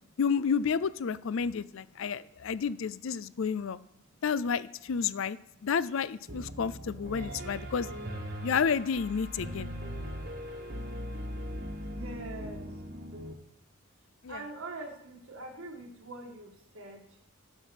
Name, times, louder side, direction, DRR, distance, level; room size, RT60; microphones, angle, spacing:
voice 1, 0.2-3.8 4.2-7.9 8.4-9.7 14.2-14.4, left 6 dB, 65° left, 18 dB, 0.4 m, -30 dB
voice 2, 1.6-2.0 3.2-3.4 4.1-4.2 5.5-5.6 11.9-12.8 14.3-17.2, right 2 dB, 70° right, 2 dB, 1.9 m, -46 dB
Piano, 6.3-13.3, equal, 50° right, 1.5 m, -39 dB
11.5 x 5.9 x 7.1 m, 0.75 s
head